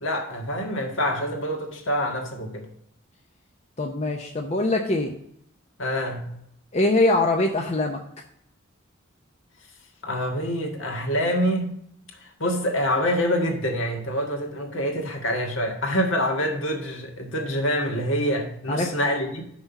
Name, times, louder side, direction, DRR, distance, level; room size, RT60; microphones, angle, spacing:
voice 1, 0.0-2.6 5.8-6.3 10.0-11.7 12.4-19.4, equal, 65° left, 2 dB, 1.7 m, -26 dB
voice 2, 3.8-5.1 6.7-8.0 18.7-18.9, left 2 dB, 30° left, 2 dB, 0.7 m, -23 dB
6.0 x 5.5 x 5.9 m, 0.72 s
head